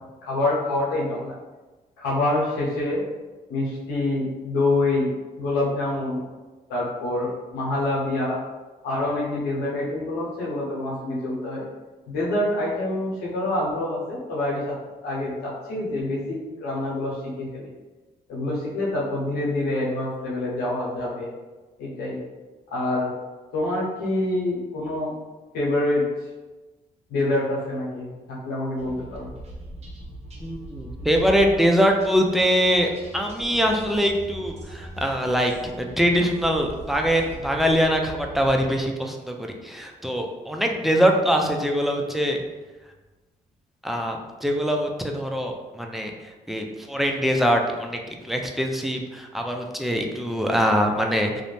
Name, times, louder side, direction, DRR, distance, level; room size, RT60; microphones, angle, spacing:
voice 1, 0.2-1.3 2.0-3.0 3.5-5.1 5.4-6.2 6.7-8.4 8.8-11.6 12.1-14.7 15.0-17.7 18.3-21.3 21.8-22.2 22.7-23.1 23.5-25.1 25.5-26.0 27.1-29.3, left 2 dB, 90° left, -5 dB, 0.9 m, -26 dB
sound 1, 28.8-38.9, right 1 dB, 40° right, 0.7 m, -40 dB
voice 2, 30.4-42.4 43.8-51.4, equal, ahead, 2 dB, 0.4 m, -23 dB
2.5 x 2.1 x 3.2 m, 1.2 s
supercardioid pair, 65°, 16 cm